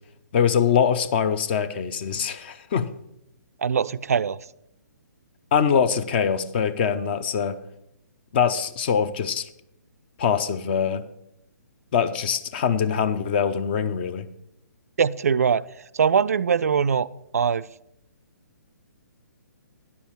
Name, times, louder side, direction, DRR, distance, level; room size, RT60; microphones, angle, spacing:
voice 1, 0.3-2.9 5.5-7.6 8.3-9.5 10.2-11.0 11.9-14.3, left 7 dB, 35° left, 13 dB, 0.7 m, -23 dB
voice 2, 3.6-4.4 15.0-15.6 15.9-17.1 17.3-17.6, right 7 dB, 55° right, 15 dB, 0.3 m, -21 dB
9.8 x 7.1 x 7.0 m, 0.81 s
figure-of-eight pair, 130°, 9 cm